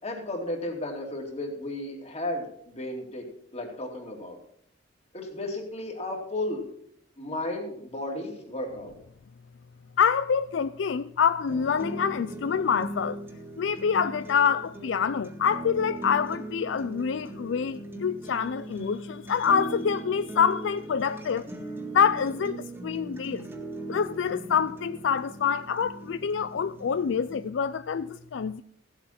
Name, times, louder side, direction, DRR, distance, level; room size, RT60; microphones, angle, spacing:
voice 1, 0.0-3.2 3.5-4.4 5.1-6.7 7.2-8.9, left 1 dB, 35° left, 2.7 m, -34 dB
voice 2, 10.0-13.2 13.6-21.5 21.9-23.5 23.9-28.6, left 7 dB, 70° left, 0.4 m, -26 dB
sound 1, 11.5-27.5, right 1 dB, 10° right, 1.8 m, -40 dB
15.5 x 8.1 x 5.8 m
head